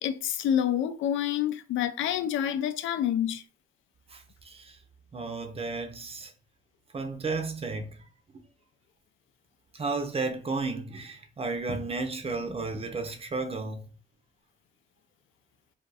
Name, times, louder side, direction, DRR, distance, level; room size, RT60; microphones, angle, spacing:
voice 1, 0.0-3.4, left 10 dB, 75° left, 0.4 m, -28 dB
voice 2, 4.1-4.8 5.1-6.3 6.9-7.9 9.7-13.8, right 3 dB, 30° right, 0.6 m, -33 dB
2.4 x 2.4 x 4.0 m
cardioid pair, 90°, 20 cm